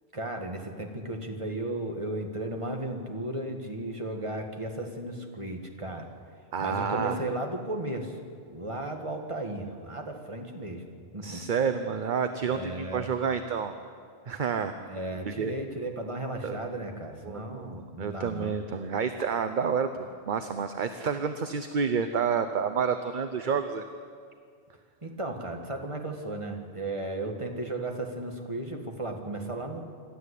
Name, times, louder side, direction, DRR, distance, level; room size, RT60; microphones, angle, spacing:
voice 1, 0.1-6.1 6.6-8.2 8.5-10.8 11.1-11.4 12.4-13.1 14.9-18.5 25.0-29.8, right 1 dB, 30° right, 3 dB, 2.0 m, -35 dB
voice 2, 6.5-7.2 11.2-13.7 14.3-15.0 15.3-15.5 16.4-16.6 17.2-23.8, right 6 dB, 50° right, 9 dB, 0.9 m, -29 dB
26.5 x 13.0 x 8.4 m, 2.2 s
omnidirectional pair, 1.1 m